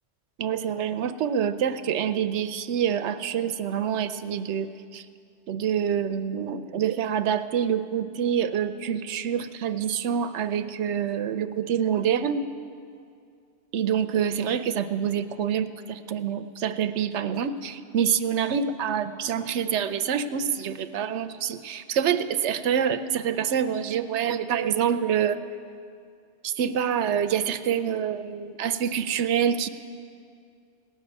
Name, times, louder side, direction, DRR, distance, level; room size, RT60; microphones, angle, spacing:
voice 1, 0.4-5.0 5.5-12.4 13.7-25.4 26.4-29.7, right 8 dB, 70° right, 11 dB, 0.9 m, -26 dB
17.0 x 6.6 x 9.4 m, 2.3 s
omnidirectional pair, 1.2 m